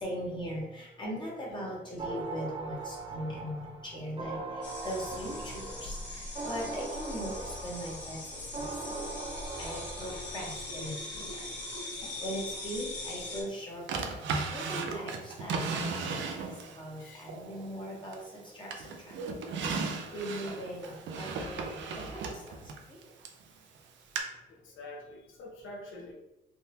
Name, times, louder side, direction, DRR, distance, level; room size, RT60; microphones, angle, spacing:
voice 1, 0.0-4.4 4.8-8.2 8.6-8.7 9.6-11.4 12.2-14.0 14.5-16.2 16.4-16.5 16.8-18.2 18.5-18.7 20.1-21.6 22.1-22.2, equal, 25° left, -4 dB, 1.0 m, -39 dB
sound 1, 2.0-10.7, right 3 dB, 25° right, 0.6 m, -40 dB
sound 2, 4.6-13.4, left 2 dB, 60° left, 1.2 m, -41 dB
Drawer open or close, 13.9-16.8 17.3-18.3 18.7-23.4 24.2-24.3, right 4 dB, 70° right, 0.5 m, -35 dB
voice 2, 17.0-17.3 19.9-20.0 22.3-22.4 24.5-26.1, left 1 dB, 75° left, -2 dB, 0.8 m, -47 dB
3.6 x 2.1 x 2.7 m, 0.95 s
cardioid pair, 90°, 20 cm